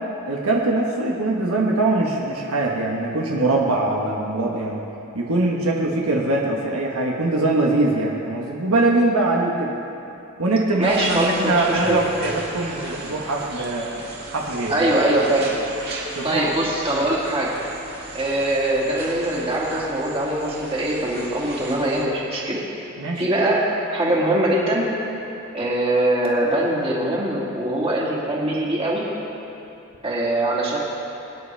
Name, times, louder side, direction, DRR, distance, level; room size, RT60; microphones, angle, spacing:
voice 1, 0.3-4.8 5.1-9.7 10.4-13.9 14.3-14.8 16.1-16.4 17.0-17.1 23.0-23.2, right 2 dB, 80° right, -2 dB, 1.3 m, -22 dB
voice 2, 10.8-12.0 14.7-15.5 16.2-17.5 18.1-22.6 23.2-24.9 25.5-29.0 30.0-30.8, right 1 dB, 25° right, -6 dB, 2.5 m, -22 dB
sound 1, 10.8-22.0, right 2 dB, 50° right, 2.3 m, -36 dB
22.5 x 10.0 x 3.4 m, 3.0 s
head